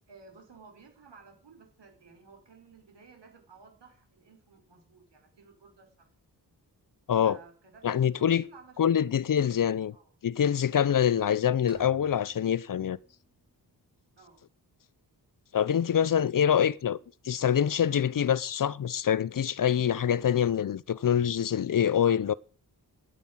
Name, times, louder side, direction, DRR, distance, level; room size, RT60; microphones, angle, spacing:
voice 1, 0.1-6.1 7.2-9.0 9.4-9.6 9.9-10.1 14.2-14.4 16.4-16.5, right 4 dB, 90° right, 5.1 m, -55 dB
voice 2, 7.8-8.5 8.8-9.9 10.2-13.0 15.5-17.0 17.3-22.3, left 9 dB, 50° left, 0.6 m, -25 dB
sound 1, 11.7-13.6, right 2 dB, 5° right, 2.7 m, -55 dB
9.6 x 9.2 x 8.7 m
wide cardioid pair, 170°, 41 cm